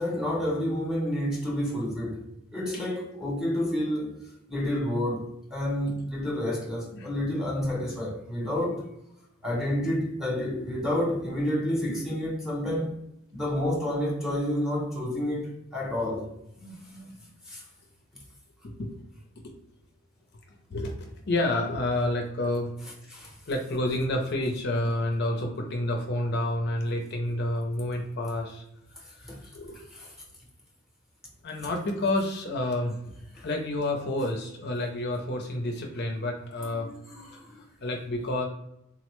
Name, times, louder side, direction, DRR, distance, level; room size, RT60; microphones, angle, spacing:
voice 1, 0.0-2.3 2.5-4.2 4.5-8.8 9.4-12.9 13.3-16.3 17.5-17.6 23.1-23.3 29.3-29.4 29.9-30.1 33.3-33.4 36.6-37.6, left 1 dB, 5° right, 0.7 m, -29 dB
voice 2, 16.6-17.2 18.6-18.9 20.7-20.9 21.3-22.7 23.5-28.6 29.1-29.8 31.4-33.0 33.4-36.9 37.3-38.4, left 1 dB, 50° left, 0.5 m, -29 dB
3.8 x 2.0 x 3.0 m
head